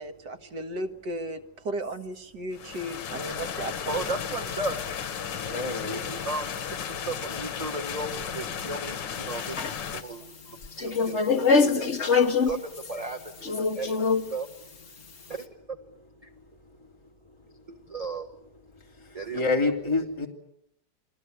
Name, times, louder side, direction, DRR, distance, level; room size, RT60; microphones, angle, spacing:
voice 1, 0.0-4.1, right 1 dB, 70° right, 6 dB, 2.3 m, -35 dB
sound 1, 2.5-10.0, left 7 dB, 85° left, 1.9 m, -34 dB
voice 2, 3.9-4.8 5.7-6.6 6.9-9.6 9.9-11.9 12.5-13.2 13.5-14.0 14.3-14.5 15.3-15.5 17.7-18.3 19.1-19.4, right 3 dB, 20° right, 6 dB, 1.4 m, -35 dB
voice 3, 5.3-6.0 19.0-20.3, left 3 dB, 15° left, 1 dB, 3.0 m, -28 dB
sound 2, 9.4-10.0 10.6-13.0 13.4-14.3, left 5 dB, 40° left, 1.9 m, -24 dB
29.5 x 21.0 x 8.1 m, 0.77 s
omnidirectional pair, 1.9 m